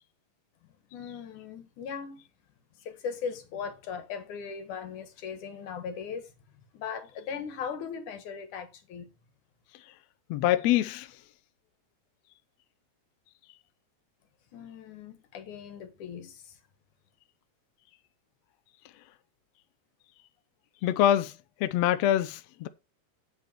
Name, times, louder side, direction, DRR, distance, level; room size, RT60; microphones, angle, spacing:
voice 1, 0.9-2.2 2.8-6.3 6.7-9.1 14.5-16.5, left 6 dB, 65° left, 2.8 m, -38 dB
voice 2, 10.3-11.1 20.8-21.3 21.6-22.7, left 12 dB, 80° left, 1.5 m, -24 dB
8.5 x 8.3 x 4.3 m
omnidirectional pair, 4.0 m